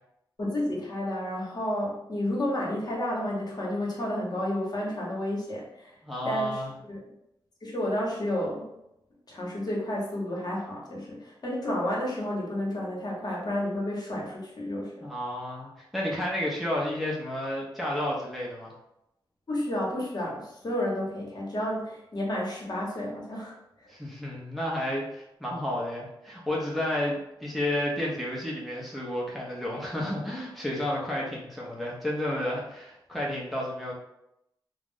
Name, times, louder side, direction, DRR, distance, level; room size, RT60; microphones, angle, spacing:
voice 1, 0.4-5.9 6.2-6.6 6.9-7.0 7.6-8.7 9.3-15.1 19.5-23.9, left 1 dB, 45° left, -3 dB, 1.0 m, -31 dB
voice 2, 6.0-6.7 15.0-18.7 23.9-33.9, left 1 dB, ahead, -5 dB, 0.7 m, -31 dB
2.3 x 2.0 x 3.6 m, 0.83 s
cardioid pair, 60°, 9 cm